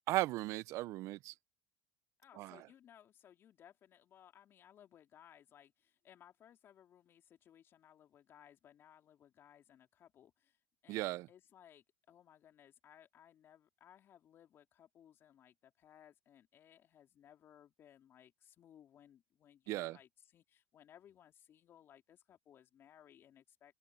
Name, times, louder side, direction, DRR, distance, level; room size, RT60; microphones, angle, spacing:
voice 1, 0.1-1.3 2.3-2.7 10.9-11.3 19.7-20.0, right 17 dB, 55° right, 1.0 m, -37 dB
voice 2, 2.2-10.6 10.8-23.7, left 10 dB, 40° left, 3.0 m, -62 dB
open air
hypercardioid pair, 95°, 6 cm